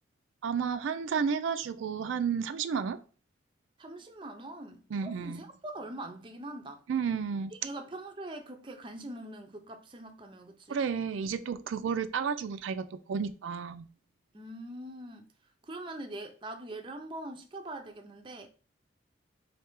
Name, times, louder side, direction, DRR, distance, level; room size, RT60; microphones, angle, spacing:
voice 1, 0.4-3.0 4.9-5.4 6.9-7.5 10.7-13.9, right 6 dB, 85° right, 0.4 m, -32 dB
voice 2, 3.8-6.8 7.6-10.8 14.3-15.3 15.6-18.5, right 1 dB, 25° right, 0.5 m, -43 dB
3.3 x 2.8 x 4.5 m
head